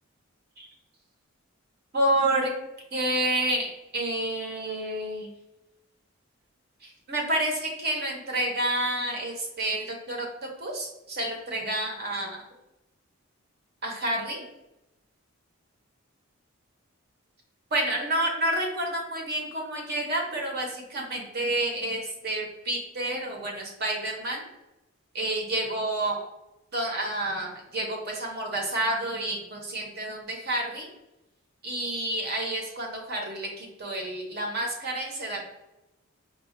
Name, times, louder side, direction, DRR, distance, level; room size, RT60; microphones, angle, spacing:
voice 1, 1.9-2.5 2.9-3.7 3.9-5.3 6.8-12.4 13.8-14.4 17.7-24.4 25.1-26.2 26.7-30.9 31.6-35.4, right 1 dB, 45° right, 0 dB, 0.7 m, -29 dB
5.0 x 2.2 x 2.5 m, 0.93 s
head